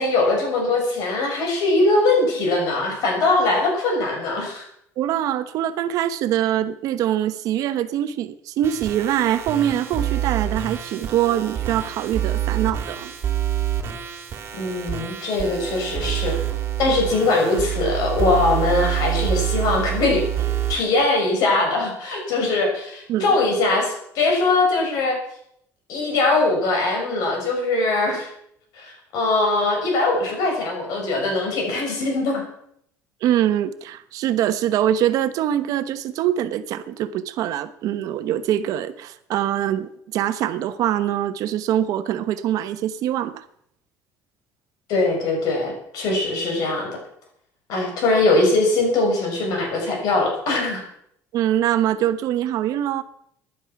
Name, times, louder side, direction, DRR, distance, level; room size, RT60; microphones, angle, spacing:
voice 1, 0.0-4.6 14.5-16.4 16.8-20.2 20.7-25.2 25.9-28.3 28.8-32.4 44.9-46.9 47.7-50.8, left 2 dB, 65° left, 1 dB, 6.2 m, -21 dB
voice 2, 5.0-13.1 23.1-23.4 33.2-43.4 51.3-53.0, right 11 dB, 60° right, 11 dB, 1.1 m, -23 dB
sound 1, 8.6-20.8, right 11 dB, 35° right, 2.4 m, -27 dB
16.0 x 11.0 x 5.9 m, 0.71 s
cardioid pair, 150°, 7 cm